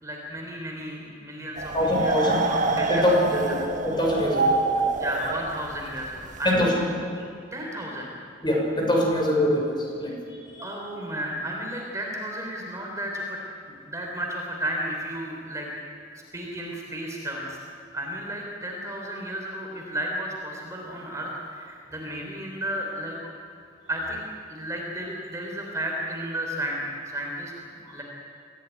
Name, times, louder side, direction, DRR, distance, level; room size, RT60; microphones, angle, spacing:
voice 1, 0.0-3.0 5.0-7.2 7.5-8.1 10.6-13.4 13.6-15.7 16.3-17.6 17.9-23.2 23.9-24.2 24.5-28.0, right 1 dB, 15° right, -1 dB, 3.7 m, -33 dB
sound 1, 1.6-6.5, right 3 dB, 45° right, 1.6 m, -26 dB
voice 2, 1.7-2.4 2.9-3.6 3.8-4.9 6.4-6.7 8.4-10.1 10.5-10.6 27.9-28.0, left 1 dB, 25° left, -1 dB, 6.0 m, -23 dB
25.0 x 16.0 x 9.5 m, 2.3 s
head